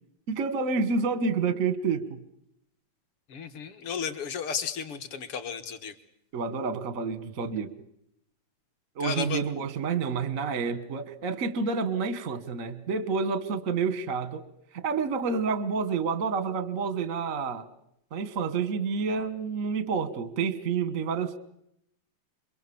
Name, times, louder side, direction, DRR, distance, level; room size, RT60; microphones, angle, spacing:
voice 1, 0.3-2.2 6.3-7.7 8.9-14.4 14.7-17.6 18.1-21.4, right 5 dB, 60° right, 14 dB, 0.8 m, -29 dB
voice 2, 3.3-5.9 9.0-9.4, left 6 dB, 60° left, 10 dB, 1.6 m, -33 dB
29.0 x 22.5 x 7.1 m, 0.78 s
omnidirectional pair, 3.8 m